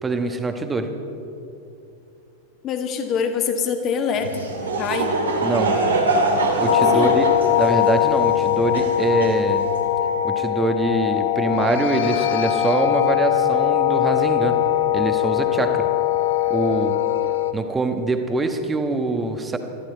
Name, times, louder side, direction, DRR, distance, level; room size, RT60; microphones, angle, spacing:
voice 1, 0.0-0.9 5.4-5.8 6.6-7.3 7.6-9.7 10.2-14.6 14.9-15.9 16.5-17.0 17.5-19.6, right 2 dB, 15° right, 7 dB, 1.3 m, -24 dB
voice 2, 2.6-5.2 6.9-7.1, left 6 dB, 30° left, 5 dB, 1.8 m, -25 dB
Laughter / Crowd, 4.1-9.9, right 2 dB, 70° right, 2.2 m, -24 dB
sound 1, 6.7-17.5, left 12 dB, 60° left, 0.7 m, -21 dB
21.5 x 13.5 x 4.6 m, 2.7 s
figure-of-eight pair, 90°, 0 cm